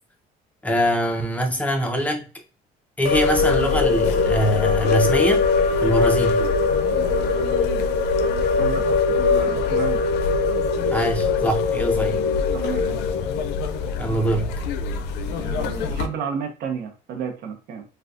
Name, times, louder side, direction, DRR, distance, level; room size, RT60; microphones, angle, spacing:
voice 1, 0.6-2.3 3.0-5.5 5.8-6.5 10.9-12.2 12.7-12.8 14.0-14.6, equal, 10° left, 0.7 m, -23 dB
sound 1, 3.1-16.1, left 4 dB, 85° left, 0.4 m, -22 dB
voice 2, 6.9-10.0 12.1-12.2 12.5-13.0 15.3-17.8, right 7 dB, 75° right, 0.8 m, -33 dB
3.4 x 2.3 x 2.5 m
cardioid pair, 110°, 17 cm